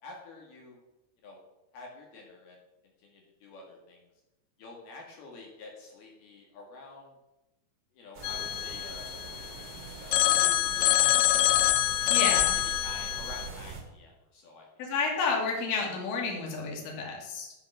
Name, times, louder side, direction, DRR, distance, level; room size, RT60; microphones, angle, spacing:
voice 1, 0.0-0.8 1.2-1.4 1.7-2.6 3.0-4.0 4.6-7.2 7.9-9.1 10.0-11.4 11.8-12.2 12.6-14.7, left 3 dB, 65° left, -1 dB, 3.6 m, -48 dB
sound 1, 8.1-13.8, right 4 dB, 30° right, 1.9 m, -42 dB
Telephone, 8.2-9.6 10.1-13.5, left 14 dB, 80° left, 2.3 m, -25 dB
voice 2, 12.1-12.6 14.8-17.5, left 4 dB, 40° left, -1 dB, 3.0 m, -31 dB
13.0 x 6.8 x 6.7 m, 0.98 s
omnidirectional pair, 5.0 m